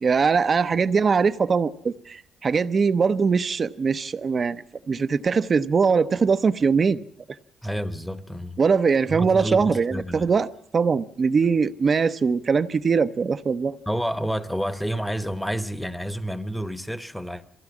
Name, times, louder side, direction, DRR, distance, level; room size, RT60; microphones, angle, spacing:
voice 1, 0.0-7.0 8.6-10.5 10.7-13.8, right 5 dB, 40° right, 0.7 m, -21 dB
voice 2, 7.6-8.6 9.1-10.3 13.9-17.4, equal, 5° left, 1.0 m, -29 dB
22.5 x 16.0 x 7.2 m
cardioid pair, 90°, 0 cm